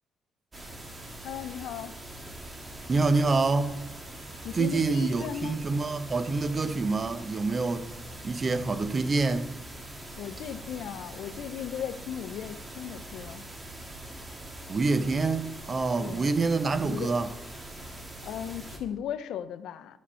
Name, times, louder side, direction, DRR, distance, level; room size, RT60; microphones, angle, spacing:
sound 1, 0.5-18.8, right 1 dB, 20° right, 1.6 m, -43 dB
voice 1, 1.2-2.0 4.4-5.6 10.2-13.4 16.0-16.3 16.9-17.2 18.2-20.0, left 9 dB, 80° left, 0.5 m, -37 dB
voice 2, 2.9-3.8 4.5-7.9 8.2-9.5 14.7-17.3, right 3 dB, 35° right, 0.8 m, -26 dB
12.0 x 5.1 x 5.5 m
cardioid pair, 90°, 0 cm